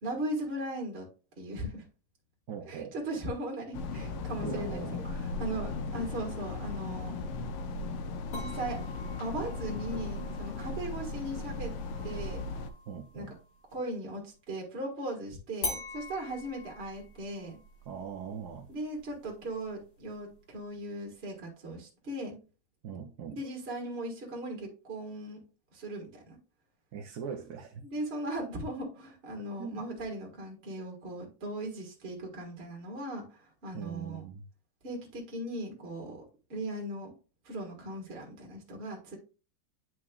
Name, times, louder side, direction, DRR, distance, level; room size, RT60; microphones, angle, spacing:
voice 1, 0.0-1.1 1.4-1.8 2.7-7.1 8.3-8.8 9.2-11.7 12.0-12.4 13.1-13.3 13.7-17.6 18.7-22.4 23.3-25.4 25.7-26.4 27.8-34.2 34.8-36.2 36.5-37.1 37.4-39.2, right 1 dB, 30° right, 1.7 m, -38 dB
voice 2, 2.5-2.9 4.4-5.2 12.9-13.3 17.9-18.7 22.8-23.4 26.9-27.8 29.6-29.9 33.7-34.4, right 7 dB, 65° right, 1.0 m, -41 dB
sound 1, 3.7-12.7, left 3 dB, 90° left, 1.6 m, -37 dB
sound 2, 8.3-13.9 15.6-20.6, left 2 dB, 65° left, 2.9 m, -45 dB
8.6 x 4.7 x 2.3 m
omnidirectional pair, 2.3 m